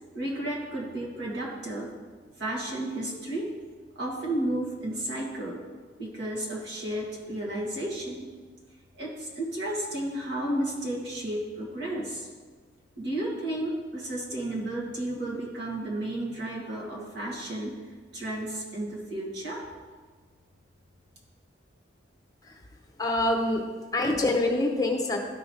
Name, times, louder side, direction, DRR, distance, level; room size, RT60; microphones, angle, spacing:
voice 1, 0.1-1.9 2.4-3.5 4.0-5.6 6.0-8.3 9.0-12.3 13.0-17.8 18.1-19.6, right 1 dB, 65° right, -4 dB, 2.1 m, -32 dB
voice 2, 23.0-23.6 23.9-25.2, left 2 dB, 20° left, 2 dB, 0.7 m, -25 dB
12.5 x 5.1 x 3.2 m, 1.5 s
head